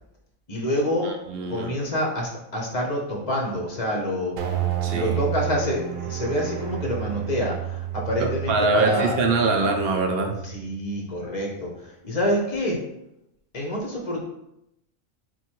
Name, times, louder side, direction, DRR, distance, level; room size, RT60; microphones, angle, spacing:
voice 1, 0.5-1.1 1.5-4.4 4.9-9.2 10.4-12.8 13.5-14.2, left 1 dB, 35° left, -1 dB, 0.7 m, -27 dB
voice 2, 1.0-1.9 4.8-5.2 8.2-10.4, right 3 dB, 60° right, 3 dB, 0.7 m, -24 dB
sound 1, 4.4-10.8, right 11 dB, 75° right, 1.0 m, -31 dB
4.3 x 2.3 x 4.5 m, 0.82 s
omnidirectional pair, 1.4 m